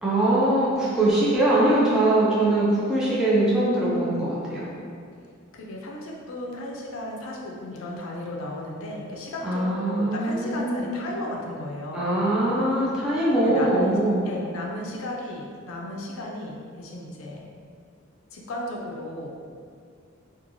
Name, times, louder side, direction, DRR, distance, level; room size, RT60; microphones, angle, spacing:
voice 1, 0.0-4.7 9.4-10.9 11.9-14.3, right 1 dB, 5° right, -9 dB, 0.4 m, -22 dB
voice 2, 5.5-12.0 13.4-17.5 18.3-19.3, left 1 dB, 75° left, -2 dB, 0.4 m, -35 dB
2.9 x 2.3 x 2.6 m, 2.2 s
head